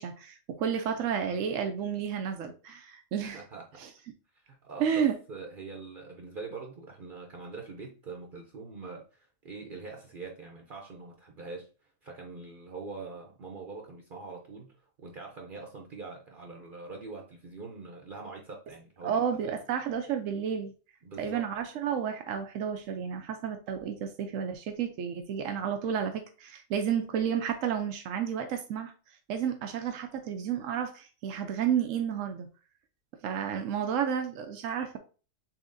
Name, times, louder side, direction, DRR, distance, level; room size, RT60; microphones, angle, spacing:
voice 1, 0.0-3.4 3.8-3.9 4.8-5.1 19.0-20.7 21.2-28.9 29.3-32.5 33.2-35.0, right 8 dB, 90° right, 1.0 m, -31 dB
voice 2, 3.3-3.8 4.3-19.5 21.0-21.5, right 4 dB, 50° right, 0.8 m, -44 dB
6.9 x 2.8 x 2.6 m
omnidirectional pair, 1.3 m